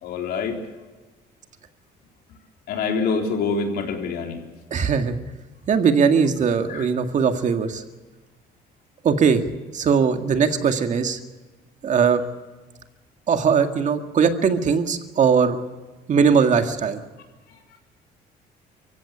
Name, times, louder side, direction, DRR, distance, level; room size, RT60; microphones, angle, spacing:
voice 1, 0.0-0.6 2.7-4.4 6.7-6.9, left 4 dB, 70° left, 3 dB, 4.0 m, -25 dB
voice 2, 4.7-5.2 5.7-7.8 9.0-9.4 9.7-11.2 11.8-12.2 13.3-15.6 16.1-17.0, right 6 dB, 45° right, 7 dB, 2.0 m, -20 dB
24.0 x 16.0 x 8.5 m, 1.2 s
cardioid pair, 110°, 17 cm